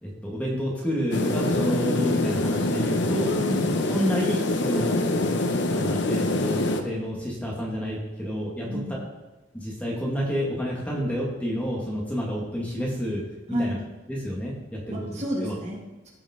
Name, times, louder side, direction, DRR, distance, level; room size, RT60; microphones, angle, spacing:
voice 1, 0.0-3.3 3.8-5.0 5.7-8.8 9.5-13.2 13.6-13.7 14.1-15.1 15.4-15.5, equal, 5° left, -4 dB, 1.7 m, -29 dB
sound 1, 1.1-6.8, left 2 dB, 60° left, 0.8 m, -25 dB
voice 2, 3.4-3.9 8.6-9.0 13.5-13.8 14.9-16.1, equal, 35° right, -3 dB, 2.0 m, -31 dB
16.0 x 5.3 x 3.7 m, 1.1 s
head